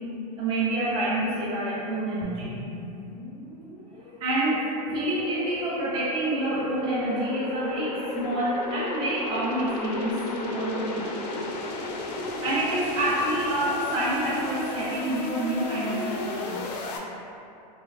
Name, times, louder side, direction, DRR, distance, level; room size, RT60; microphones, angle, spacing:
voice 1, 0.4-2.5 4.2-11.2 12.4-16.6, right 1 dB, 25° right, -7 dB, 0.5 m, -28 dB
sound 1, 2.2-17.0, left 2 dB, 70° left, 0.5 m, -34 dB
2.3 x 2.2 x 3.3 m, 2.7 s
supercardioid pair, 135°, 21 cm